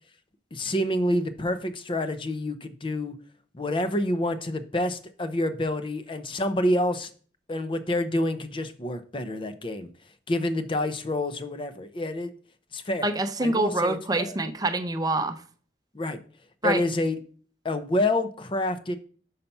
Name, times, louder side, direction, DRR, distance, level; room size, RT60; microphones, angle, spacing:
voice 1, 0.5-3.1 3.5-7.1 7.5-9.9 10.3-12.3 12.7-13.2 13.4-14.4 15.9-16.2 16.6-17.2 17.6-19.0, left 1 dB, 30° left, 0.6 m, -28 dB
voice 2, 13.0-15.4 16.6-16.8, right 2 dB, 20° right, 0.6 m, -26 dB
5.7 x 5.6 x 5.3 m
head